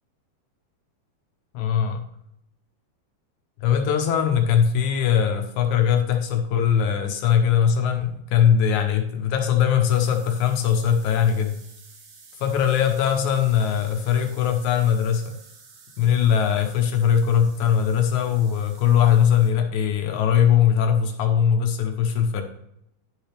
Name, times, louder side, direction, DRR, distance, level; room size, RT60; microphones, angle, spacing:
voice 1, 1.5-2.0 3.6-11.6 12.4-15.4 16.0-22.4, left 8 dB, 70° left, 5 dB, 1.9 m, -20 dB
sound 1, 9.9-19.5, right 5 dB, 80° right, 3.5 m, -50 dB
11.0 x 6.1 x 3.3 m, 0.77 s
omnidirectional pair, 4.3 m